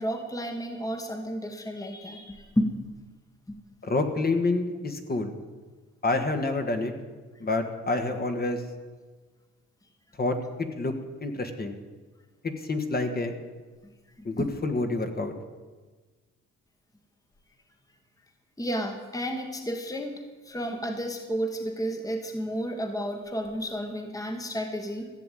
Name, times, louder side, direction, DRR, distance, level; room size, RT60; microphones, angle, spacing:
voice 1, 0.0-2.7 3.5-3.6 14.2-14.5 18.6-25.1, equal, 10° left, 5 dB, 1.5 m, -32 dB
voice 2, 3.8-5.3 6.0-6.9 7.4-8.6 10.2-10.4 10.8-11.8 12.4-13.3 14.2-15.3, left 2 dB, 30° left, 5 dB, 1.7 m, -28 dB
15.0 x 7.1 x 9.1 m, 1.4 s
cardioid pair, 90°, 30 cm